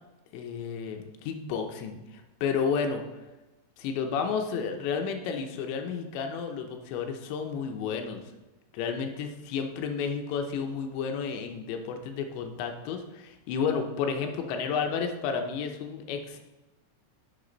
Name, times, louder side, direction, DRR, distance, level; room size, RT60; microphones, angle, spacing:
voice 1, 0.3-3.0 3.8-8.2 8.7-16.4, left 6 dB, 80° left, 5 dB, 3.1 m, -31 dB
9.7 x 6.9 x 4.0 m, 1.1 s
omnidirectional pair, 5.3 m